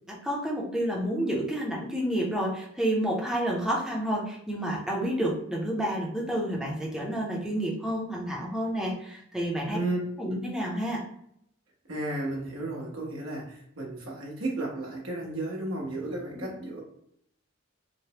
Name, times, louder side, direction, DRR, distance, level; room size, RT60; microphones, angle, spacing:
voice 1, 0.2-9.8 10.2-11.0, right 1 dB, 5° right, -3 dB, 0.5 m, -29 dB
voice 2, 11.9-16.8, right 2 dB, 80° right, -2 dB, 0.9 m, -33 dB
3.2 x 2.0 x 2.8 m, 0.72 s
head